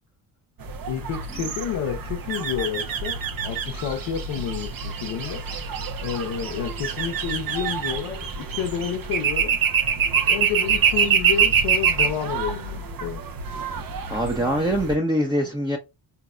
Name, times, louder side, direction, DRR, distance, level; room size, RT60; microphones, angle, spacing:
sound 1, 0.6-15.0, right 6 dB, 45° right, 0.8 m, -26 dB
voice 1, 0.9-3.2 3.4-5.4 6.0-9.6 10.3-13.2, left 8 dB, 70° left, 0.8 m, -30 dB
voice 2, 14.1-15.8, equal, 10° right, 0.8 m, -23 dB
3.9 x 2.8 x 2.4 m
supercardioid pair, 55°, 49 cm